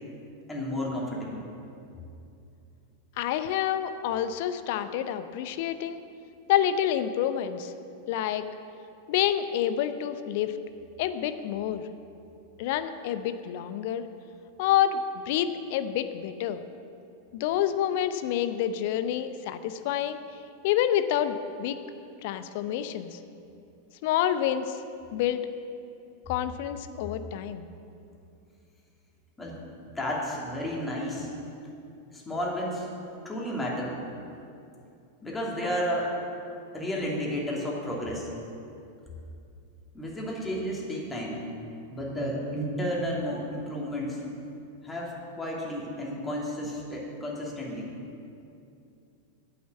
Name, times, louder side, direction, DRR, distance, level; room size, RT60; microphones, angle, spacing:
voice 1, 0.5-1.4 29.4-29.6 29.9-31.3 32.1-32.9 33.2-33.9 35.2-36.1 36.7-38.3 39.9-41.4 41.9-44.2 44.8-47.9, equal, 10° left, -3 dB, 2.7 m, -32 dB
voice 2, 3.2-6.0 6.5-7.7 8.1-8.4 9.1-10.5 11.0-11.8 12.6-14.1 14.6-16.6 17.3-20.2 20.6-21.8 22.2-23.2 24.0-24.8 25.1-25.4 26.3-27.6, left 10 dB, 50° left, 11 dB, 0.7 m, -28 dB
8.8 x 8.7 x 8.0 m, 2.6 s
figure-of-eight pair, 90°, 0 cm